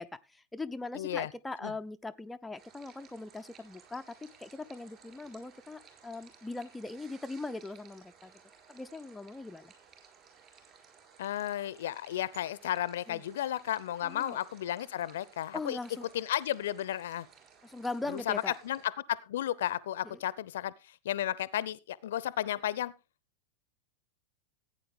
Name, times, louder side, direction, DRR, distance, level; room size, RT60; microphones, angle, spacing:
voice 1, 0.0-8.3 8.7-9.7 13.1-13.2 14.0-14.4 15.5-16.1 17.6-18.5, left 3 dB, 5° left, 0.5 m, -40 dB
voice 2, 0.9-1.3 1.6-1.7 11.2-15.8 16.1-17.3 18.1-22.9, left 12 dB, 60° left, 0.6 m, -33 dB
sound 1, 2.6-18.9, right 6 dB, 30° right, 4.4 m, -58 dB
15.5 x 9.0 x 3.6 m
figure-of-eight pair, 90°, 0 cm